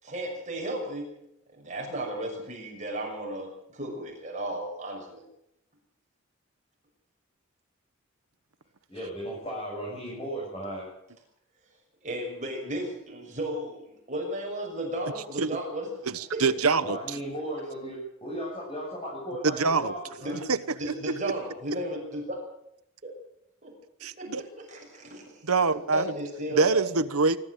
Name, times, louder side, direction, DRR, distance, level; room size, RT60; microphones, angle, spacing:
voice 1, 0.0-1.1 1.5-5.2 12.0-13.8 14.1-16.4 20.2-20.4 20.7-22.4 23.0-23.1 23.6-23.7 24.2-25.4 25.9-26.9, right 1 dB, 35° right, 6.3 m, -34 dB
voice 2, 8.9-10.9 16.8-20.4, equal, 25° left, 7.6 m, -36 dB
voice 3, 16.1-17.0 19.4-19.9 20.5-20.6 24.0-24.4 25.4-26.1 26.6-27.4, right 4 dB, 85° right, 1.1 m, -24 dB
25.0 x 13.0 x 8.0 m
head